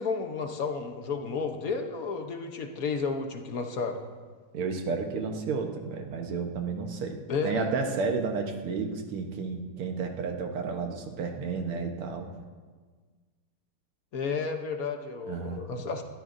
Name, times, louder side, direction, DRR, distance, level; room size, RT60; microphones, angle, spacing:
voice 1, 0.0-4.0 7.3-7.7 14.1-16.0, left 4 dB, 55° left, 5 dB, 1.1 m, -32 dB
voice 2, 4.5-12.3 15.3-15.6, right 4 dB, 85° right, 3 dB, 2.1 m, -32 dB
20.5 x 13.5 x 2.6 m, 1.5 s
omnidirectional pair, 2.4 m